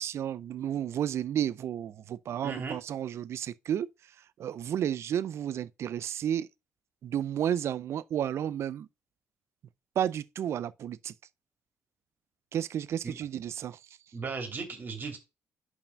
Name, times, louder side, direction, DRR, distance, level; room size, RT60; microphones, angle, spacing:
voice 1, 0.0-3.9 4.4-6.5 7.0-8.9 10.0-11.1 12.5-13.8, right 10 dB, 60° right, 0.4 m, -32 dB
voice 2, 2.4-2.8 13.0-13.2 14.1-15.2, right 4 dB, 40° right, 2.8 m, -36 dB
5.4 x 4.8 x 5.2 m
cardioid pair, 95°, 5 cm